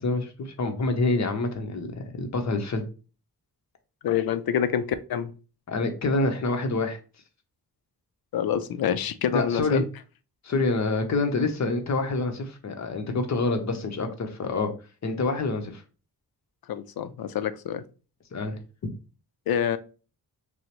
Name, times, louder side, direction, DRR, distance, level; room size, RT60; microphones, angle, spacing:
voice 1, 0.0-1.9 2.2-2.8 5.7-7.0 9.3-9.8 10.4-14.7 15.0-15.8 18.3-18.9, left 2 dB, 45° left, 5 dB, 0.8 m, -27 dB
voice 2, 4.0-4.8 5.1-5.3 8.3-9.9 16.7-17.8 19.5-19.8, left 9 dB, 70° left, 12 dB, 0.5 m, -26 dB
6.1 x 2.1 x 3.0 m, 0.35 s
wide cardioid pair, 145°, 38 cm